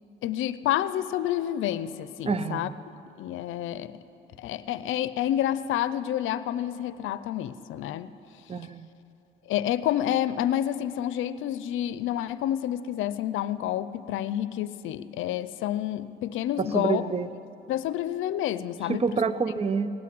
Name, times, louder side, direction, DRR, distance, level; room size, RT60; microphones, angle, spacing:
voice 1, 0.2-2.7 3.2-4.0 4.4-8.1 9.5-17.0 17.7-19.2, left 12 dB, 85° left, 14 dB, 0.5 m, -29 dB
voice 2, 2.3-2.7 8.5-8.9 16.6-17.3 18.9-19.9, right 5 dB, 30° right, 14 dB, 0.6 m, -27 dB
18.0 x 8.5 x 9.4 m, 2.8 s
cardioid pair, 90°, 20 cm